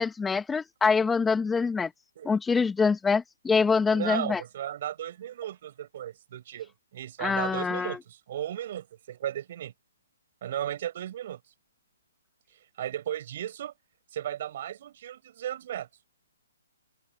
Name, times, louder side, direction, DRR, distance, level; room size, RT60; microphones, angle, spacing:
voice 1, 0.0-1.9 2.3-4.4 7.2-8.0, left 5 dB, 10° left, 2.0 m, -25 dB
voice 2, 3.9-9.7 10.4-11.4 12.8-13.7 14.1-15.9, right 11 dB, 45° right, 6.5 m, -35 dB
figure-of-eight pair, 135°, 0 cm